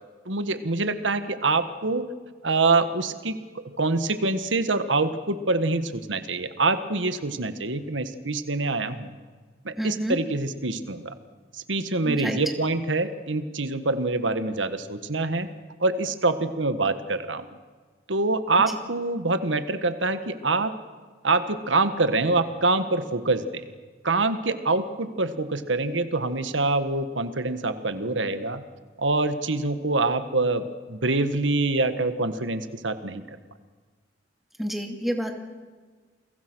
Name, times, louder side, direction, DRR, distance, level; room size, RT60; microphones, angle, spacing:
voice 1, 0.2-2.1 2.4-3.3 3.8-9.2 9.6-11.1 11.5-15.5 15.8-17.5 18.1-20.7 21.2-23.6 24.0-28.6 29.0-33.4, right 3 dB, 90° right, 10 dB, 1.6 m, -25 dB
voice 2, 9.8-10.2 12.0-12.4 18.7-18.8 34.6-35.3, equal, ahead, 3 dB, 2.6 m, -29 dB
29.5 x 23.0 x 6.3 m, 1.4 s
head